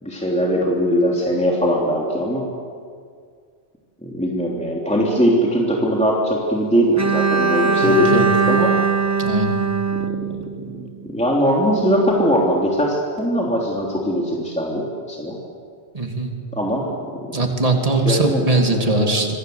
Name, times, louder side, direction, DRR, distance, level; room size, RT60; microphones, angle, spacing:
voice 1, 0.0-2.5 4.0-8.7 10.0-10.2 10.7-15.4 16.6-16.9 18.0-18.6 18.9-19.2, equal, 5° left, -3 dB, 3.2 m, -20 dB
Bowed string instrument, 7.0-11.0, right 5 dB, 15° right, 0.7 m, -20 dB
voice 2, 7.8-8.2 9.2-9.6 15.9-16.3 17.3-19.3, right 2 dB, 35° right, 2 dB, 2.8 m, -20 dB
27.5 x 23.0 x 8.0 m, 2.1 s
omnidirectional pair, 1.1 m